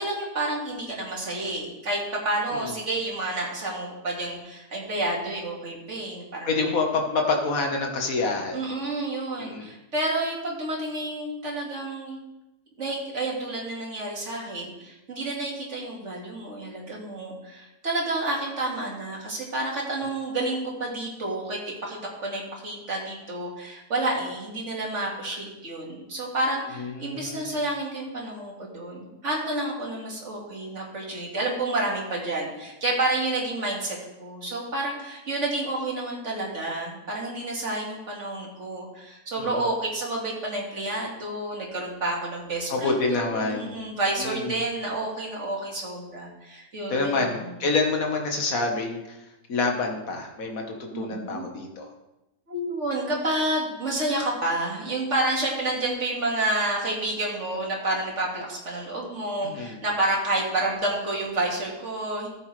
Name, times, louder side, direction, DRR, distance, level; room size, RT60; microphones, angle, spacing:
voice 1, 0.0-6.7 8.5-12.2 12.8-47.5 50.9-51.5 52.5-62.3, right 2 dB, 55° right, -2 dB, 2.5 m, -29 dB
voice 2, 6.5-8.7 9.4-9.7 26.8-27.6 39.4-39.7 42.7-43.7 44.2-44.6 46.9-51.9 59.4-59.8, left 3 dB, 70° left, 2 dB, 1.8 m, -27 dB
13.5 x 7.8 x 3.3 m, 0.95 s
omnidirectional pair, 1.5 m